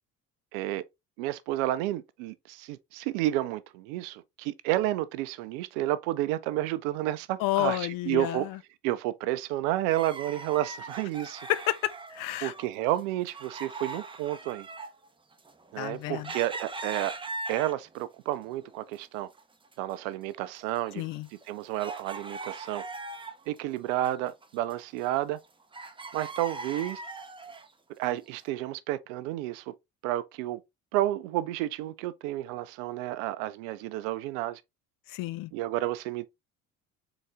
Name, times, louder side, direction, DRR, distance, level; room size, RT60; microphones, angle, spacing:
voice 1, 0.5-0.8 1.2-8.5 8.8-11.5 12.4-14.7 15.7-17.1 17.5-19.3 19.8-21.0 21.5-22.8 23.5-25.4 26.1-27.0 28.0-29.7 30.0-30.6 30.9-34.6 35.5-36.3, right 14 dB, 65° right, 0.6 m, -31 dB
voice 2, 7.4-8.6 11.2-12.5 15.8-16.3 21.0-21.3 35.1-35.5, left 16 dB, 50° left, 0.6 m, -31 dB
sound 1, 9.9-12.7 12.9-18.0 18.5-19.4 19.7-19.8 20.4-23.6 23.9-25.5 25.7-27.7 28.3-28.4, right 3 dB, 10° right, 0.6 m, -41 dB
3.9 x 3.9 x 3.5 m
figure-of-eight pair, 55°, 43 cm